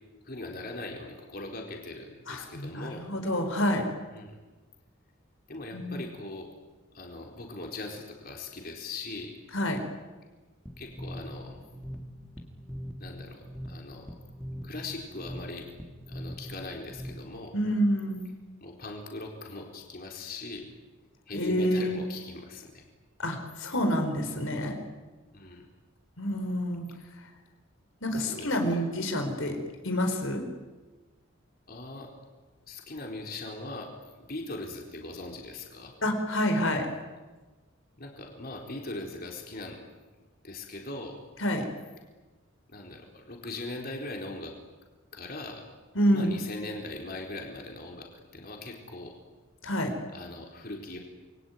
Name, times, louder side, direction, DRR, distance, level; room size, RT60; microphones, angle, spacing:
voice 1, 0.2-3.1 4.1-4.4 5.5-6.5 6.9-9.3 10.8-11.6 13.0-14.1 14.6-15.7 16.1-17.6 18.6-20.7 21.3-22.8 25.3-25.7 28.1-28.8 31.7-32.1 32.7-33.9 34.2-35.9 38.0-39.8 40.4-41.2 42.7-44.5 45.1-45.6 46.1-49.2 50.1-51.0, left 2 dB, 45° left, 1 dB, 4.2 m, -40 dB
voice 2, 2.3-3.8 5.7-6.0 9.5-9.8 17.5-18.2 21.3-22.0 23.2-24.8 26.2-26.9 28.0-29.5 29.8-30.4 36.0-36.9 41.4-41.6 45.9-46.4 49.6-49.9, equal, 75° left, 5 dB, 4.7 m, -28 dB
Horror Loop, 10.7-17.5, equal, 5° left, 2.7 m, -42 dB
27.5 x 22.5 x 9.4 m, 1.3 s
head